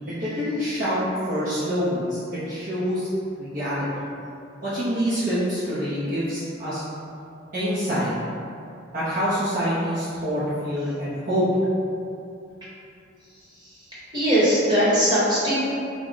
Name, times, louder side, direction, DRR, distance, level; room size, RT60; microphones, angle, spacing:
voice 1, 0.1-3.1 3.4-3.9 4.6-6.8 7.5-8.1 8.9-11.5, equal, 45° right, -11 dB, 0.6 m, -26 dB
voice 2, 14.1-15.6, equal, 20° right, -11 dB, 1.0 m, -20 dB
3.5 x 2.0 x 3.8 m, 2.5 s
head